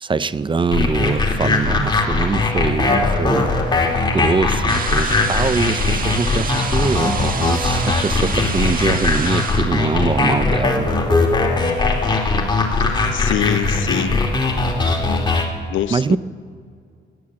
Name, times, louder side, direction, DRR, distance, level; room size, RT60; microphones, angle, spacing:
voice 1, 0.0-3.6 4.1-10.9 15.9-16.2, right 4 dB, 25° right, 18 dB, 0.4 m, -22 dB
sound 1, 0.7-15.5, left 3 dB, 20° left, 2.2 m, -19 dB
sound 2, 4.7-9.6, right 5 dB, 45° right, 1.5 m, -28 dB
voice 2, 12.8-14.2 15.7-16.2, left 12 dB, 75° left, 17 dB, 0.5 m, -25 dB
17.5 x 9.6 x 7.7 m, 2.2 s
cardioid pair, 90°, 20 cm